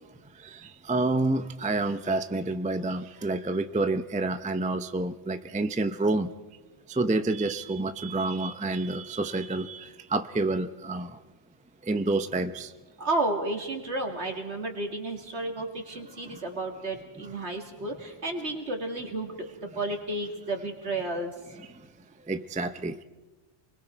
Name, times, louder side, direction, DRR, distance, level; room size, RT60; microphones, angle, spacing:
voice 1, 0.4-6.3 6.9-11.1 11.9-12.7 16.3-16.4 22.3-23.0, right 2 dB, 10° right, 10 dB, 0.4 m, -28 dB
voice 2, 13.0-19.3 19.8-21.3, right 2 dB, 70° right, 3 dB, 2.7 m, -32 dB
29.0 x 21.5 x 4.5 m, 1.2 s
omnidirectional pair, 1.2 m